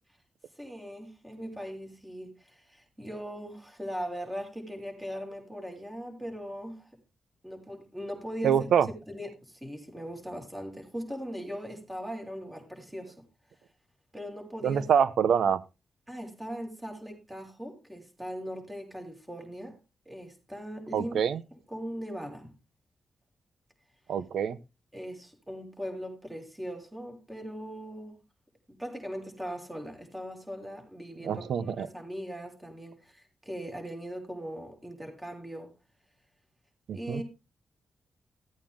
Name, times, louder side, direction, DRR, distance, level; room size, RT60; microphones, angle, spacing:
voice 1, 0.6-6.9 7.4-8.7 9.1-13.1 14.1-14.8 16.1-19.8 20.1-21.2 21.7-22.5 24.9-28.2 28.7-35.7 36.9-37.2, equal, 10° right, 6.0 m, -39 dB
voice 2, 8.4-8.9 14.6-15.6 20.9-21.4 24.1-24.6 31.2-31.9 36.9-37.2, right 8 dB, 85° right, 0.9 m, -25 dB
15.5 x 8.8 x 3.7 m
cardioid pair, 80°, 0 cm